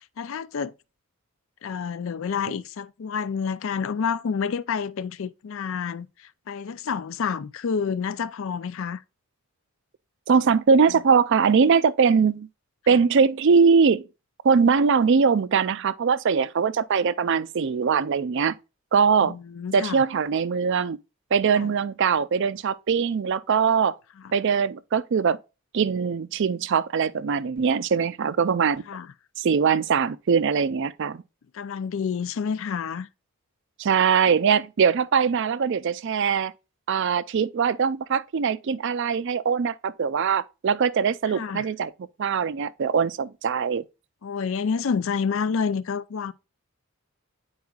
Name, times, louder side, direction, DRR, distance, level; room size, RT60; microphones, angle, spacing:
voice 1, 0.2-0.7 1.6-9.0 10.9-11.0 12.9-13.0 19.2-20.0 21.5-21.7 28.9-29.1 31.5-33.1 41.3-41.7 44.2-46.3, left 6 dB, 60° left, 0.4 m, -29 dB
voice 2, 10.3-12.5 12.9-14.0 14.4-18.5 18.9-19.3 19.7-21.0 21.3-24.0 24.3-25.4 25.7-28.8 29.4-31.2 33.8-36.5 36.9-41.9 42.2-43.8, right 6 dB, 55° right, 0.4 m, -21 dB
9.4 x 4.7 x 2.3 m
head